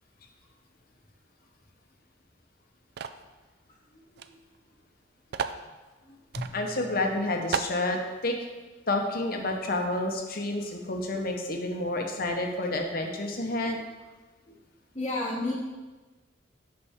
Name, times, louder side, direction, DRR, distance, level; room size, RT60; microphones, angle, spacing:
sound 1, 3.0-3.3 4.2-4.3 4.5-4.6 5.3-5.6 6.3-6.5 7.0-7.1 7.5-7.8, right 6 dB, 55° right, 0.3 m, -32 dB
voice 1, 3.9-4.4 6.0-6.2 10.6-10.7 14.5-14.6 14.9-15.5, left 2 dB, 25° left, -8 dB, 1.2 m, -34 dB
Drum, 6.4-9.3, left 1 dB, 85° left, 1.4 m, -45 dB
voice 2, 6.5-8.4 8.9-13.8, left 2 dB, 50° left, 3 dB, 0.9 m, -29 dB
8.1 x 5.9 x 3.6 m, 1.2 s
head